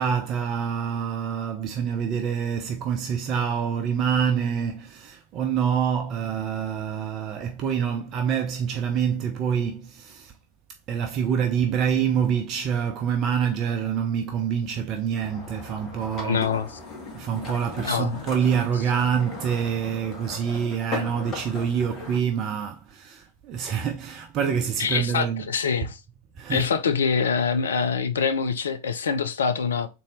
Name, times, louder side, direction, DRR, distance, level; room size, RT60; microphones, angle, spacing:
voice 1, 0.0-10.3 10.9-16.5 17.1-25.6 26.4-26.7, right 7 dB, 35° right, 0.5 m, -26 dB
sound 1, 15.2-22.2, left 3 dB, 30° left, 1.4 m, -37 dB
voice 2, 16.2-16.7 17.8-18.2 24.8-26.0 26.5-29.9, left 6 dB, 65° left, 0.4 m, -25 dB
4.0 x 2.6 x 3.2 m
figure-of-eight pair, 90°, 0 cm